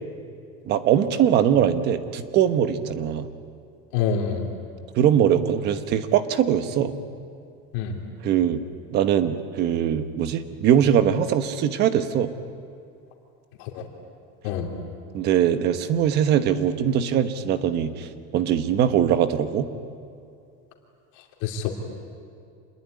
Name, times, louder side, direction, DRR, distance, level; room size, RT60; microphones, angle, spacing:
voice 1, 0.7-3.3 5.0-6.9 8.2-8.6 8.9-12.3 15.1-19.7, right 9 dB, 35° right, 11 dB, 1.2 m, -21 dB
voice 2, 3.9-4.5 7.7-8.0 13.6-13.8 14.4-14.7 21.4-21.7, left 7 dB, 55° left, 2 dB, 3.3 m, -26 dB
27.0 x 21.0 x 9.5 m, 2.4 s
cardioid pair, 180°, 30 cm